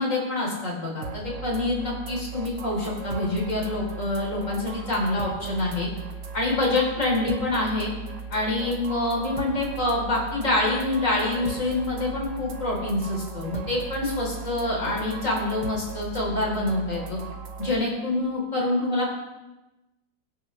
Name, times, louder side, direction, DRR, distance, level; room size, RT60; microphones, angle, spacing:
voice 1, 0.0-5.9 6.3-7.9 8.3-17.2 17.6-19.1, left 2 dB, 45° left, -2 dB, 4.1 m, -26 dB
sound 1, 1.0-17.7, right 5 dB, 75° right, 2.0 m, -37 dB
22.0 x 9.9 x 3.2 m, 1.0 s
omnidirectional pair, 1.9 m